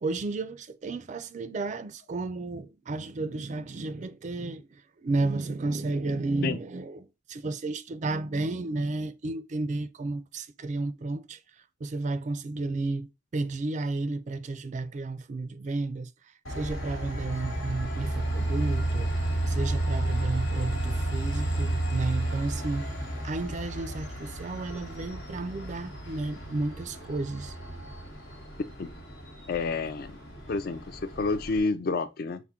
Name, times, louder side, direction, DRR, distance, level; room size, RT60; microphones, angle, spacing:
voice 1, 0.0-11.4 11.8-16.1 16.6-19.1 19.5-22.9 23.2-27.5, right 2 dB, 40° right, 0.3 m, -32 dB
Train, 16.4-31.6, right 1 dB, 90° left, 1.3 m, -32 dB
voice 2, 29.5-30.1 30.5-32.4, left 4 dB, 50° left, 0.4 m, -29 dB
5.6 x 2.1 x 3.6 m
head